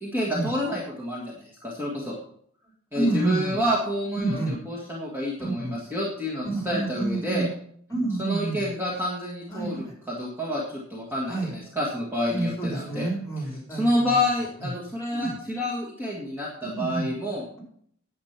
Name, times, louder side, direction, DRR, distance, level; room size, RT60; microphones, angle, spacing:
voice 1, 0.0-2.2 2.9-7.5 8.2-13.1 13.7-17.4, left 1 dB, 10° right, -4 dB, 1.8 m, -28 dB
voice 2, 2.9-3.6 4.1-4.6 5.4-5.8 6.4-7.5 7.9-8.7 9.5-9.9 11.2-11.5 12.3-14.2 14.6-14.7 15.1-15.4 16.7-17.1, right 2 dB, 15° left, -1 dB, 4.5 m, -29 dB
10.0 x 8.2 x 5.9 m, 0.64 s
head